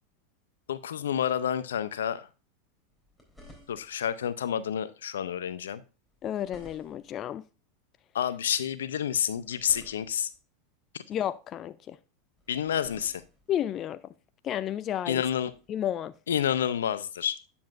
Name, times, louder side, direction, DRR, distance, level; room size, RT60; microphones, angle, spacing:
voice 1, 0.7-2.3 3.7-5.8 8.1-10.3 10.9-11.0 12.5-13.2 15.1-15.5 16.3-17.4, left 9 dB, 85° left, 0.6 m, -29 dB
sound 1, 2.9-4.1 6.1-7.2 9.2-10.4 12.4-13.5 15.5-15.7, left 1 dB, ahead, 3.6 m, -54 dB
voice 2, 6.2-7.4 11.1-12.0 13.5-14.0 14.4-15.2 15.7-16.1, left 11 dB, 40° left, 0.4 m, -31 dB
9.4 x 7.0 x 2.5 m
hypercardioid pair, 95°, 0 cm